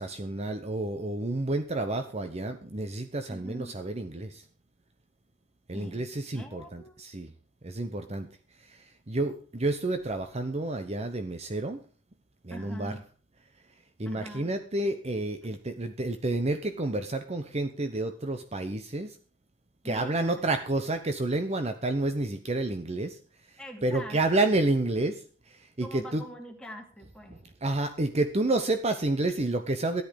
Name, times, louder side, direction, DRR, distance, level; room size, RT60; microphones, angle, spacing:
voice 1, 0.0-4.4 5.7-7.3 7.6-8.3 8.6-11.8 12.4-13.0 14.0-19.2 19.8-23.2 23.5-26.2 27.3-30.0, right 2 dB, 35° right, 8 dB, 0.9 m, -30 dB
voice 2, 3.3-3.8 5.7-7.0 12.5-13.0 14.0-14.6 19.8-20.6 23.6-24.2 25.8-27.5, equal, 5° left, 1 dB, 2.7 m, -44 dB
13.5 x 10.5 x 5.2 m, 0.40 s
head